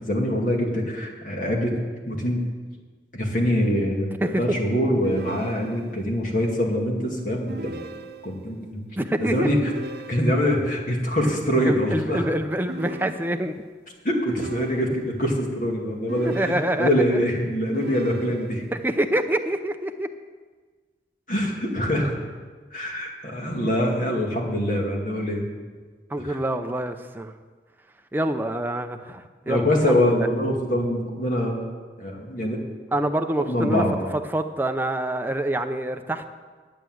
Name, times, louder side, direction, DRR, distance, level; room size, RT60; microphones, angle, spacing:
voice 1, 0.0-1.7 2.1-2.4 3.1-7.8 8.2-8.8 9.2-9.6 10.1-12.2 14.0-18.6 21.3-22.1 22.7-25.5 26.2-26.4 29.5-31.6 32.0-32.6 33.5-34.0, equal, 45° left, 0 dB, 2.2 m, -24 dB
voice 2, 4.2-4.6 9.0-9.5 11.6-13.5 16.2-16.9 18.7-20.1 26.1-27.3 28.1-30.3 32.9-33.8 34.1-36.3, right 1 dB, 10° right, 6 dB, 0.6 m, -26 dB
sound 1, 5.0-6.1 7.5-8.5 9.6-10.7 12.7-13.7 14.3-15.2 16.1-17.1 17.7-18.8, right 2 dB, 70° right, 1.0 m, -38 dB
11.0 x 8.4 x 7.8 m, 1.4 s
head